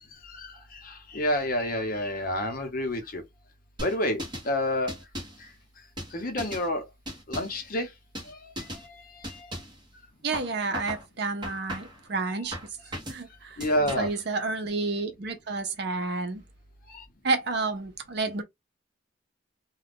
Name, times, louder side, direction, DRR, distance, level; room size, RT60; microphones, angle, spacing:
voice 1, 0.2-3.2 3.8-4.9 6.1-6.8 7.3-7.9 8.3-8.4 8.8-9.5 13.6-14.1 16.9-17.0, left 1 dB, 50° left, 0.8 m, -29 dB
sound 1, 3.8-4.5 4.9-5.4 6.0-6.7 7.0-7.6 8.1-8.3 8.6-8.9 9.2-9.8 10.3-11.0 11.4-12.0 12.5-13.2 13.6-14.2, equal, 25° right, 1.0 m, -37 dB
voice 2, 10.2-12.6 13.1-13.6 14.0-16.4 17.2-18.4, right 3 dB, 60° right, 0.6 m, -30 dB
2.4 x 2.3 x 3.4 m
head